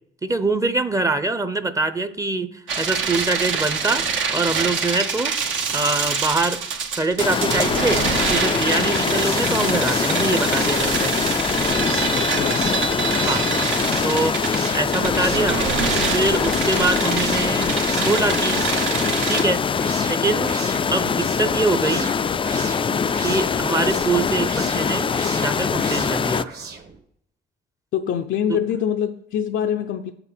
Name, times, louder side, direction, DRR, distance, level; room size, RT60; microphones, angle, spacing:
voice 1, 0.2-4.0 4.3-5.3 5.7-6.6 7.0-8.0 8.3-11.2 13.3-13.5 14.0-14.4 14.7-15.6 16.1-17.7 18.0-18.6 19.3-19.6 20.1-20.6 20.9-22.1 23.2-26.5 28.5-28.6, right 2 dB, 15° right, 0.7 m, -24 dB
sound 1, 2.7-19.4, right 6 dB, 75° right, 1.2 m, -25 dB
sound 2, 7.2-26.4, left 6 dB, 25° left, 0.3 m, -23 dB
sound 3, 8.9-27.0, right 5 dB, 55° right, 1.5 m, -37 dB
voice 2, 12.1-12.7 27.9-30.1, left 9 dB, 70° left, 0.6 m, -24 dB
7.4 x 5.9 x 5.9 m
cardioid pair, 90°, 20 cm